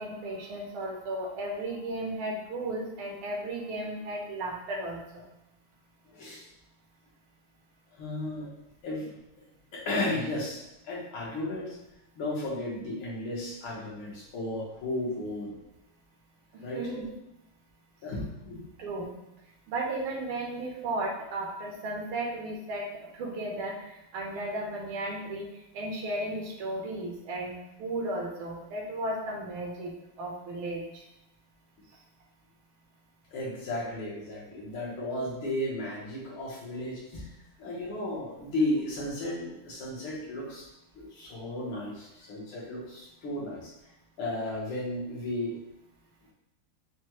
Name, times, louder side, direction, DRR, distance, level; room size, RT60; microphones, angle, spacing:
voice 1, 0.0-5.2 16.5-17.0 18.8-19.1 19.7-22.9 23.1-25.5 25.7-31.0, right 1 dB, 85° right, -1 dB, 1.8 m, -35 dB
voice 2, 6.1-6.4 7.9-8.5 8.8-9.1 9.7-11.8 12.2-15.5 16.6-16.8 18.0-18.7 33.3-37.3 37.6-40.7 41.0-43.7 44.2-45.6, left 1 dB, 75° left, -5 dB, 2.0 m, -34 dB
6.1 x 2.3 x 3.0 m, 0.90 s
omnidirectional pair, 2.3 m